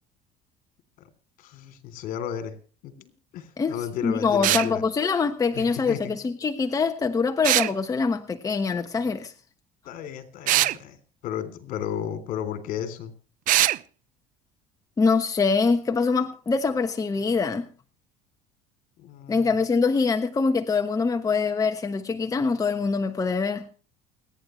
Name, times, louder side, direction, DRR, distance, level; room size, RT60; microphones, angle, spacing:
voice 1, 1.4-2.5 2.8-4.8 5.5-6.2 9.8-11.0 11.2-13.1 19.0-19.6, left 9 dB, 65° left, 10 dB, 3.4 m, -34 dB
voice 2, 4.0-9.3 15.0-17.7 19.3-23.7, left 4 dB, 20° left, 6 dB, 1.2 m, -24 dB
sound 1, 4.4-4.7 7.4-7.7 10.5-10.8 13.5-13.8, right 15 dB, 55° right, 0.6 m, -21 dB
29.0 x 10.0 x 3.3 m, 0.37 s
supercardioid pair, 110°, 16 cm